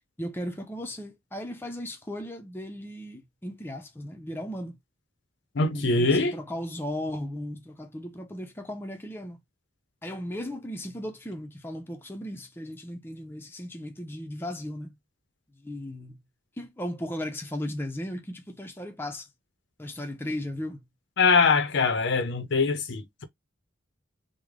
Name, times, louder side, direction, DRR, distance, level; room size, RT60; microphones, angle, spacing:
voice 1, 0.2-4.8 5.7-9.4 10.0-14.9 15.6-16.2 16.6-19.3 19.8-20.8, left 1 dB, 10° left, 0.5 m, -36 dB
voice 2, 5.6-6.4 21.2-23.2, left 4 dB, 60° left, 0.6 m, -23 dB
3.2 x 2.1 x 3.6 m
head